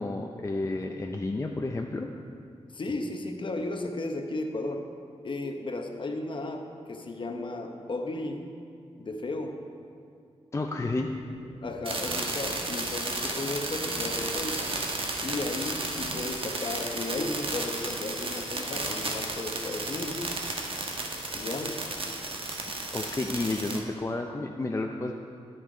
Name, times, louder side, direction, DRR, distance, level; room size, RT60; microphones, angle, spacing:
voice 1, 0.0-2.1 10.5-11.1 22.9-25.1, left 2 dB, 25° left, 2 dB, 0.5 m, -31 dB
voice 2, 2.7-4.9 5.2-8.5 9.0-9.6 11.6-14.8 15.2-20.3 21.3-21.8, left 2 dB, 45° left, 4 dB, 0.9 m, -34 dB
sound 1, 10.7-16.3, left 2 dB, 80° left, 1.3 m, -47 dB
sound 2, 11.8-23.8, right 2 dB, 50° right, 1.1 m, -33 dB
10.5 x 6.5 x 4.9 m, 2.3 s
wide cardioid pair, 85°, 12 cm